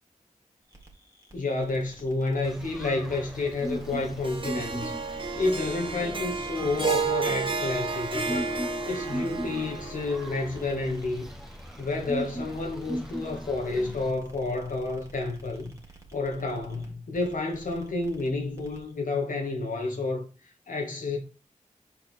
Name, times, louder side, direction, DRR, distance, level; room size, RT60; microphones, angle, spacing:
sound 1, 0.7-18.9, right 1 dB, 20° right, 1.8 m, -49 dB
voice 1, 1.3-8.5 8.9-11.3 11.8-15.7 16.1-21.2, left 3 dB, 80° left, 1.4 m, -30 dB
sound 2, 2.4-14.1, right 1 dB, ahead, 1.1 m, -39 dB
Harp, 4.2-10.6, right 4 dB, 40° right, 1.1 m, -31 dB
5.4 x 4.4 x 4.3 m
wide cardioid pair, 60°, 14 cm